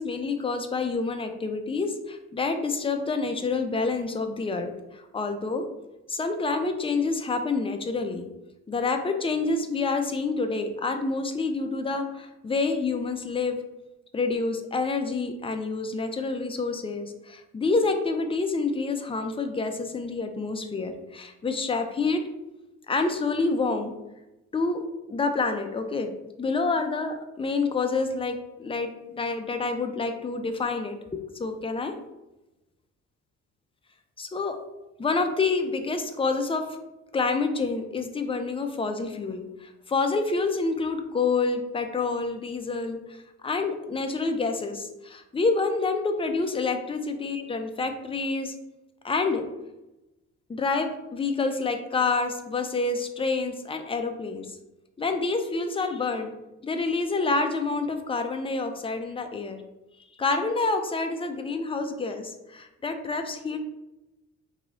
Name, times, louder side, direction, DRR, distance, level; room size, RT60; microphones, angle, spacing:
voice 1, 0.0-5.7 6.1-8.3 8.7-13.6 14.1-22.3 22.9-23.9 24.5-26.1 26.4-31.0 31.4-31.9 34.2-34.6 35.0-36.8 37.1-48.5 49.0-49.5 50.5-54.5 55.0-56.3 56.6-59.6 60.2-63.6, left 3 dB, 20° left, 6 dB, 0.5 m, -28 dB
4.6 x 3.1 x 2.5 m, 0.97 s
cardioid pair, 90°, 30 cm